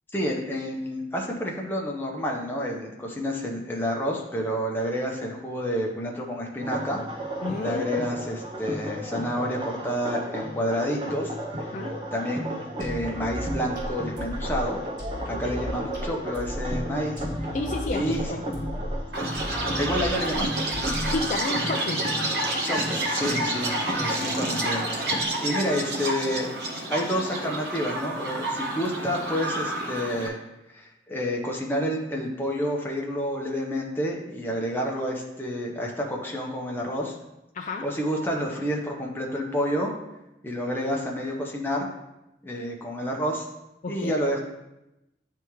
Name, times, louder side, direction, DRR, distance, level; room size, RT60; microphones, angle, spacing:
voice 1, 0.1-7.0 7.6-11.7 12.1-12.5 12.8-14.8 15.3-17.2 17.9-18.3 19.8-20.5 22.6-26.5 26.9-30.4 30.7-37.1 37.8-39.9 40.4-41.9 42.4-43.5 43.9-44.4, equal, 10° left, -1 dB, 0.8 m, -29 dB
sound 1, 6.6-25.2, equal, 30° right, 0.6 m, -34 dB
voice 2, 7.4-7.8 11.7-12.0 17.5-18.4 21.1-22.0 37.5-37.9 43.8-44.1, left 2 dB, 45° left, 2 dB, 0.4 m, -30 dB
sound 2, 12.8-21.4, left 1 dB, 45° right, 2.3 m, -35 dB
Chirp tweet, 19.1-30.3, right 1 dB, 65° right, 1.0 m, -29 dB
10.0 x 3.5 x 3.1 m, 0.93 s
head